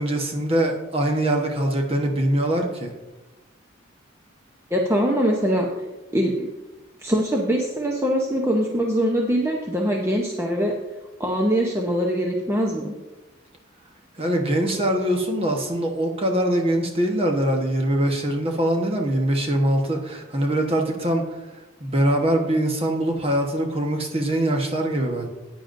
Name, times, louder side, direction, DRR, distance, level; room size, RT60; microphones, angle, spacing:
voice 1, 0.0-2.9 14.2-21.2 21.8-25.3, right 1 dB, 30° right, 2 dB, 1.1 m, -23 dB
voice 2, 4.7-5.7 6.1-6.5 7.0-10.7 11.2-12.9, equal, 15° right, -1 dB, 0.7 m, -22 dB
14.5 x 9.2 x 2.6 m, 1.1 s
head